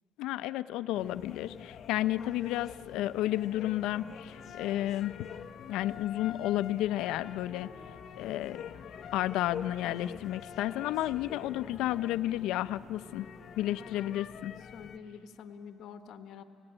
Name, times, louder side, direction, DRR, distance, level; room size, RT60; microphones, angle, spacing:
voice 1, 0.2-5.2 5.7-7.7 8.1-8.6 9.1-13.3 13.6-14.5, left 14 dB, 80° left, 13 dB, 0.5 m, -32 dB
sound 1, 1.0-15.0, left 8 dB, 40° left, 0.7 m, -46 dB
voice 2, 13.7-14.1 14.7-16.4, left 7 dB, 55° left, 8 dB, 1.2 m, -47 dB
28.0 x 17.0 x 8.9 m, 3.0 s
cardioid pair, 170°, 0 cm